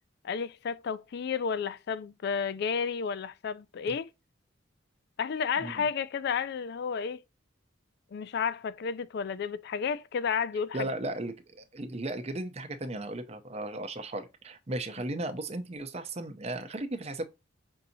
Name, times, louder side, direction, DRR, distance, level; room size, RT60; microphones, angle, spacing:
voice 1, 0.2-4.1 5.2-7.2 8.1-10.9, left 6 dB, 55° left, 0.3 m, -32 dB
voice 2, 10.7-17.2, right 1 dB, 30° right, 0.6 m, -36 dB
5.4 x 2.7 x 2.7 m
head